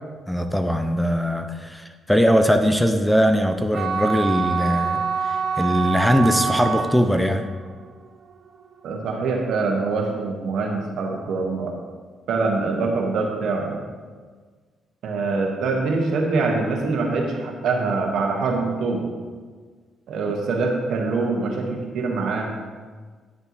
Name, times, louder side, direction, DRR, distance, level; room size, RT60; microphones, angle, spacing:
voice 1, 0.3-7.5, equal, 5° left, 7 dB, 0.5 m, -21 dB
sound 1, 3.7-9.9, right 6 dB, 55° right, 0.6 m, -27 dB
voice 2, 8.8-11.7 12.3-13.8 15.0-19.1 20.1-22.5, right 3 dB, 75° right, 1 dB, 1.3 m, -24 dB
9.9 x 6.7 x 3.0 m, 1.5 s
cardioid pair, 90°, 0 cm